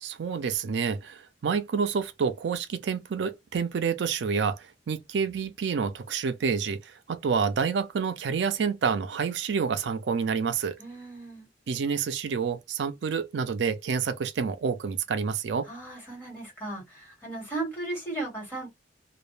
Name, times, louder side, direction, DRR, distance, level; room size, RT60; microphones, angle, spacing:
voice 1, 0.0-10.8 11.7-15.7, right 6 dB, 75° right, 0.4 m, -28 dB
voice 2, 10.8-11.5 15.7-18.7, right 2 dB, 10° left, 1.4 m, -36 dB
2.2 x 2.1 x 3.0 m
head